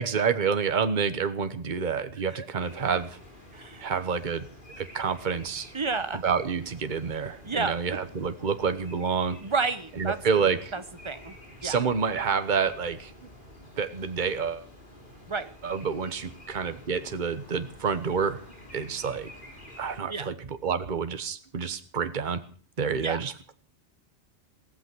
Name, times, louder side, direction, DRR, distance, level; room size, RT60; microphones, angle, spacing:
voice 1, 0.0-3.2 3.8-4.5 4.8-5.7 6.2-9.4 10.0-10.7 11.6-13.1 13.8-14.6 15.6-18.4 18.7-19.3 19.8-20.3 20.6-22.4 22.8-23.3, right 6 dB, 45° right, 11 dB, 1.3 m, -28 dB
sound 1, 2.6-20.0, left 1 dB, 45° left, 4.7 m, -49 dB
voice 2, 3.5-3.8 5.7-6.2 7.4-8.0 9.4-10.2 10.7-11.4 11.6-11.8 15.3-15.6 20.1-20.3 22.9-23.2, right 4 dB, 25° right, 13 dB, 1.0 m, -31 dB
16.0 x 14.0 x 6.1 m, 0.43 s
omnidirectional pair, 1.2 m